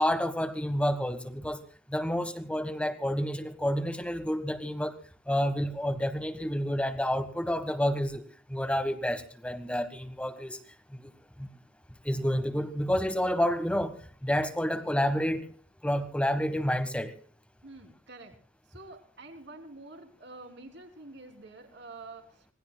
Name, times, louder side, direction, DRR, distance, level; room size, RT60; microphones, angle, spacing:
voice 1, 0.0-1.6 1.9-5.0 5.3-8.2 8.5-10.6 10.9-11.1 11.4-11.5 12.0-14.0 14.2-15.5 15.8-17.1, equal, 5° left, 9 dB, 1.4 m, -29 dB
voice 2, 17.6-18.4 18.7-22.5, right 2 dB, 55° right, 5 dB, 3.2 m, -47 dB
26.5 x 19.5 x 2.3 m, 0.43 s
head